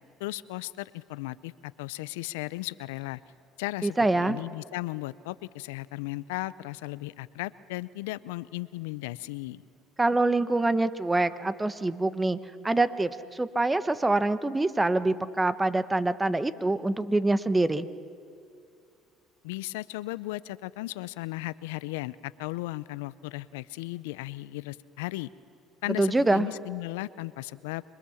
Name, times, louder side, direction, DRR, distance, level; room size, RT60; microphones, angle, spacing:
voice 1, 0.2-3.2 3.6-9.6 19.4-25.3 25.8-27.8, left 19 dB, 85° left, 18 dB, 0.5 m, -36 dB
voice 2, 3.8-4.4 10.0-12.4 12.6-17.9 26.0-26.5, right 2 dB, 15° right, 13 dB, 1.1 m, -25 dB
27.0 x 22.5 x 7.2 m, 2.4 s
supercardioid pair, 80°, 0 cm